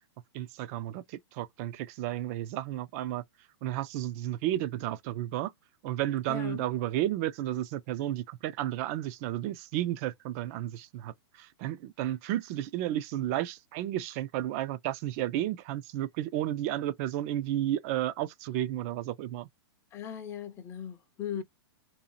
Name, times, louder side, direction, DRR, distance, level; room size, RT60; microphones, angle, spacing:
voice 1, 0.3-3.2 3.6-5.5 5.8-19.5, right 13 dB, 35° right, 0.4 m, -32 dB
voice 2, 6.3-6.6 19.9-21.4, left 9 dB, 20° left, 0.5 m, -38 dB
2.7 x 2.4 x 2.8 m
hypercardioid pair, 145°, 14 cm